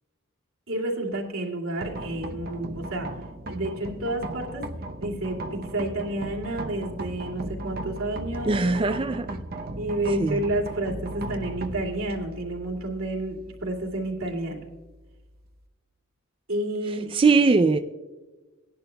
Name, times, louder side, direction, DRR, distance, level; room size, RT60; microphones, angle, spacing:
voice 1, 0.7-3.1 3.5-4.7 5.0-9.3 9.8-14.6 16.5-17.2, right 1 dB, 85° right, 0 dB, 2.6 m, -30 dB
sound 1, 1.8-15.7, right 1 dB, 50° right, 0.7 m, -37 dB
voice 2, 8.4-9.4 10.2-10.4 17.1-17.8, right 4 dB, 25° right, 7 dB, 0.4 m, -21 dB
18.0 x 11.0 x 2.2 m, 1.2 s
head